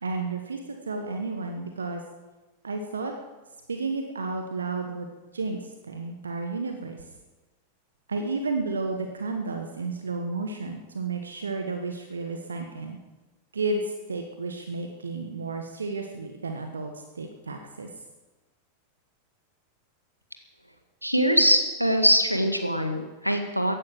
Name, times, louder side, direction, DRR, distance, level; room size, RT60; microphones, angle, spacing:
voice 1, 0.0-2.0 2.6-3.1 3.7-5.1 5.3-7.0 8.1-13.0 13.5-17.9, right 3 dB, 75° right, 4 dB, 1.4 m, -32 dB
voice 2, 21.0-23.7, equal, 90° right, 6 dB, 1.8 m, -22 dB
15.5 x 11.0 x 7.6 m, 1.2 s
figure-of-eight pair, 90°, 0 cm